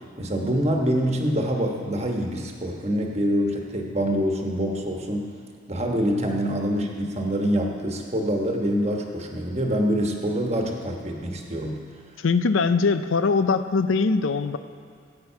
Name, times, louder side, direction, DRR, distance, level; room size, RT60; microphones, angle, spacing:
voice 1, 0.2-5.3 5.7-11.8, equal, 35° right, 1 dB, 1.3 m, -25 dB
voice 2, 6.3-6.6 12.2-14.6, left 4 dB, 90° left, 11 dB, 0.5 m, -22 dB
15.0 x 8.8 x 5.7 m, 2.3 s
head